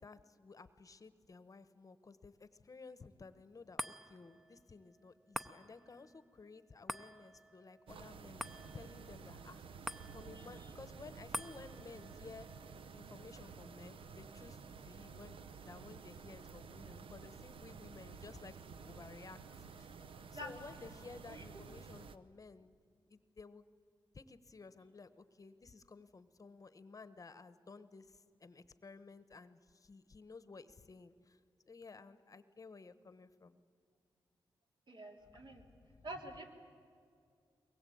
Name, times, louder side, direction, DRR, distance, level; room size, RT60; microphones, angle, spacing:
voice 1, 0.0-8.4 8.7-12.5 12.9-15.4 15.7-22.7 23.1-23.6 24.1-31.4 31.7-33.6 35.9-36.1, left 4 dB, 40° left, 13 dB, 0.9 m, -55 dB
sound 1, 3.8-16.4 16.8-16.9, equal, 5° right, 0.7 m, -50 dB
sound 2, 7.9-22.2, right 5 dB, 85° right, 0.8 m, -52 dB
voice 2, 20.3-20.9 21.3-21.4 34.9-35.6 36.0-36.4, equal, 60° right, 2 dB, 3.1 m, -48 dB
23.0 x 21.0 x 8.5 m, 2.3 s
wide cardioid pair, 90°, 9 cm